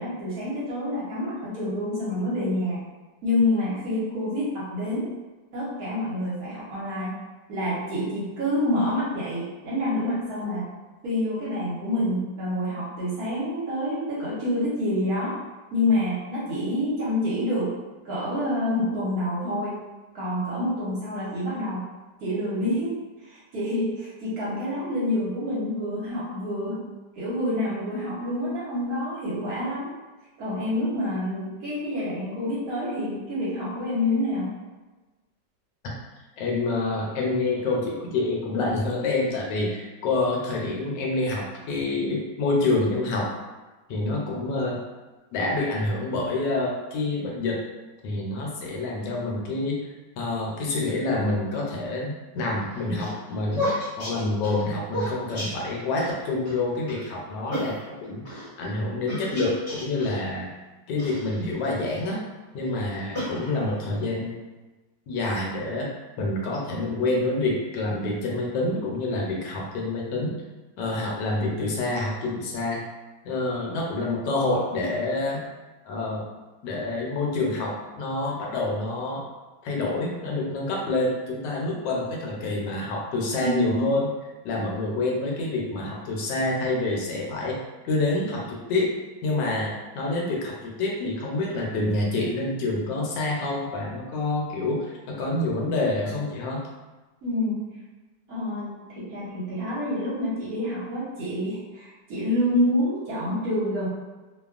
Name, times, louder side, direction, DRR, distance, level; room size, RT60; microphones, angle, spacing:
voice 1, 0.0-2.8 3.2-5.1 5.5-7.1 7.5-10.7 11.0-15.4 15.7-17.7 18.0-19.8 20.1-21.8 22.2-22.9 23.2-26.8 27.2-29.9 30.4-34.5 83.4-84.0 97.2-97.7 98.3-103.9, left 1 dB, 60° right, -8 dB, 1.2 m, -27 dB
voice 2, 36.4-43.3 43.9-44.8 45.3-47.6 48.0-49.8 50.2-53.7 54.0-60.5 60.9-62.2 62.5-64.4 65.1-65.9 66.2-70.4 70.8-72.8 73.2-75.4 75.8-76.2 76.6-79.2 79.6-84.1 84.4-87.6 87.8-88.9 89.2-96.6, left 2 dB, 80° left, -2 dB, 1.2 m, -27 dB
sound 1, 52.6-56.1 56.5-56.6 56.9-57.1 57.5-58.5 59.1-60.2 61.0-62.1 62.7-63.9, left 1 dB, 40° left, 0.8 m, -33 dB
2.9 x 2.2 x 2.3 m, 1.2 s
omnidirectional pair, 1.9 m